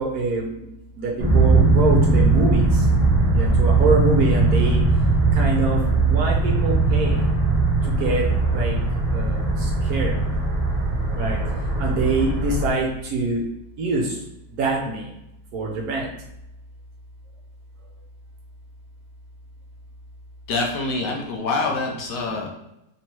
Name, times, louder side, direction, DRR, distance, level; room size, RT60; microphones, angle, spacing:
voice 1, 0.0-2.9 3.3-4.8 5.3-7.2 7.9-8.3 8.5-8.8 9.1-10.2 11.1-11.4 11.8-13.5 13.8-14.2 14.5-15.1 15.5-16.1, right 3 dB, 65° right, -1 dB, 1.0 m, -25 dB
sound 1, 1.2-12.7, right 3 dB, 35° right, 0.6 m, -20 dB
voice 2, 20.5-22.5, left 3 dB, 75° left, -1 dB, 1.3 m, -25 dB
3.5 x 3.0 x 2.9 m, 0.85 s
omnidirectional pair, 1.9 m